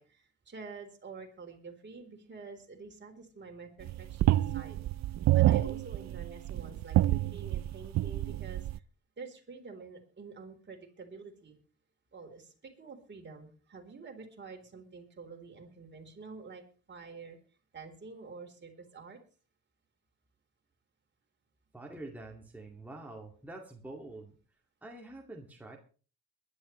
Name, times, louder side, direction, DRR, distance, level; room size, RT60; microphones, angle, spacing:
voice 1, 0.0-4.8 5.3-8.7 9.2-11.6 12.1-17.4 17.7-19.2, right 4 dB, 35° right, 3 dB, 4.1 m, -48 dB
sound 1, 3.8-8.8, right 14 dB, 65° right, 0.6 m, -28 dB
voice 2, 21.7-24.4 24.8-25.8, right 2 dB, 5° right, -1 dB, 2.4 m, -46 dB
22.0 x 11.5 x 3.3 m, 0.38 s
cardioid pair, 90°, 30 cm